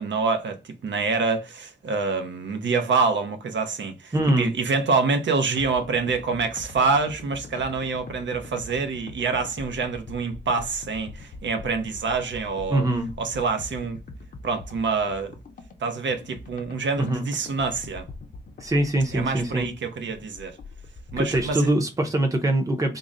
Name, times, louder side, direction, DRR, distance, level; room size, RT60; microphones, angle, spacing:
voice 1, 0.0-12.8 13.2-14.0 14.4-15.3 15.8-18.1 19.1-20.6 21.1-21.7, right 4 dB, 85° right, 0.7 m, -26 dB
voice 2, 4.1-4.5 12.7-13.1 17.0-17.3 18.6-19.7 21.2-23.0, right 1 dB, 20° right, 0.6 m, -23 dB
sound 1, 5.6-21.6, left 3 dB, 50° left, 0.5 m, -43 dB
3.8 x 2.0 x 3.6 m
wide cardioid pair, 175°, 18 cm